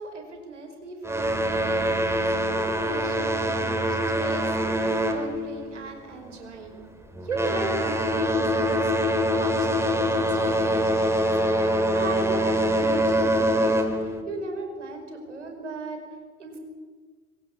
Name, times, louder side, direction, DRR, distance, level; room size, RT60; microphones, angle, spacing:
voice 1, 0.0-2.2 2.5-6.8 7.2-8.9 9.2-16.0 16.4-16.6, right 3 dB, 80° right, 4 dB, 5.2 m, -37 dB
sound 1, 1.0-5.9 6.2-6.6 7.1-14.2, equal, 5° right, 3.8 m, -24 dB
27.0 x 22.5 x 7.2 m, 1.5 s
figure-of-eight pair, 65°, 35 cm